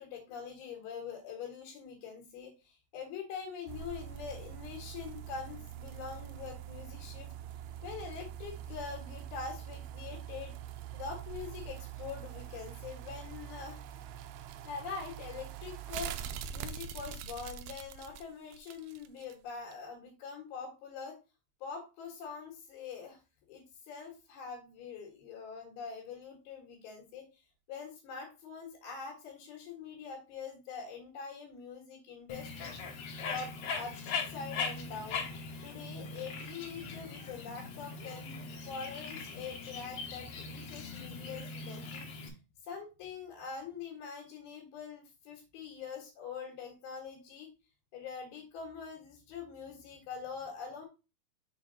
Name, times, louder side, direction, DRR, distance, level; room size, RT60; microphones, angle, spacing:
voice 1, 0.0-7.3 7.8-10.6 10.9-13.8 14.6-16.1 16.5-21.2 21.6-23.2 23.5-27.2 27.7-32.7 33.2-35.3 35.6-42.1 42.6-47.5 47.9-50.9, left 6 dB, 80° left, -2 dB, 3.4 m, -44 dB
sound 1, 3.7-19.3 19.7-19.8, right 9 dB, 85° right, 2.5 m, -44 dB
Bird, 32.3-42.3, left 4 dB, 60° left, 1.9 m, -40 dB
6.6 x 4.0 x 3.9 m, 0.29 s
omnidirectional pair, 4.3 m